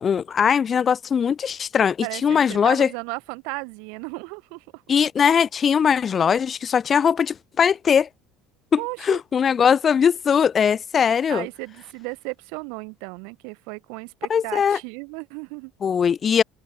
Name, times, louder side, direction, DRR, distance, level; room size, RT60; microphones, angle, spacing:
voice 1, 0.0-2.9 4.9-8.1 8.7-11.5 14.3-14.8 15.8-16.4, left 7 dB, 35° left, 0.4 m, -20 dB
voice 2, 2.0-4.8 8.8-9.2 11.3-15.7, right 36 dB, 60° right, 1.1 m, -35 dB
figure-of-eight pair, 60°, 0 cm